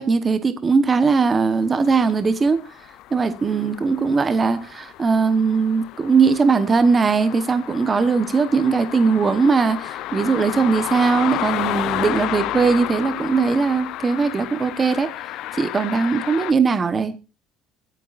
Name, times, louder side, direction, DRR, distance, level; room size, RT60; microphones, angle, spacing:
voice 1, 0.0-2.6 3.1-15.1 15.5-17.2, right 4 dB, 20° right, 1.0 m, -19 dB
sound 1, 1.9-16.5, left 15 dB, 60° left, 0.6 m, -31 dB
23.0 x 9.1 x 2.5 m
cardioid pair, 165°, 0 cm